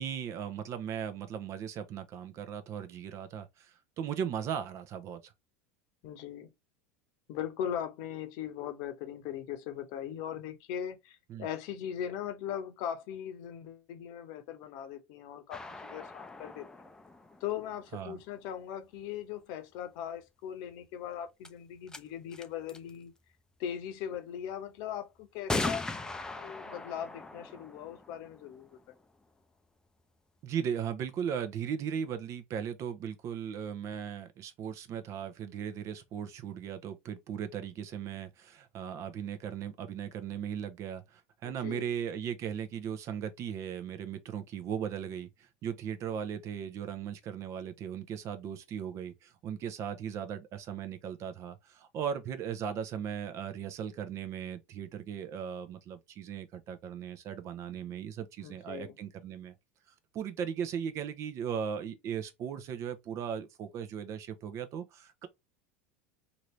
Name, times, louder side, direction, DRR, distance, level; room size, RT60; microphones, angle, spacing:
voice 1, 0.0-5.3 11.3-11.5 17.9-18.2 30.4-59.5 60.1-65.3, right 8 dB, 45° right, 0.7 m, -37 dB
voice 2, 6.0-6.5 7.3-16.9 17.4-23.1 23.6-28.8 41.4-41.9 58.4-59.0, left 9 dB, 60° left, 0.8 m, -39 dB
sound 1, 15.5-18.2 20.8-20.9 21.4-21.5 21.9-22.0 22.3-22.9 24.2-24.3 25.5-29.0, left 3 dB, 10° left, 0.5 m, -39 dB
2.9 x 2.7 x 3.1 m
hypercardioid pair, 85°, 7 cm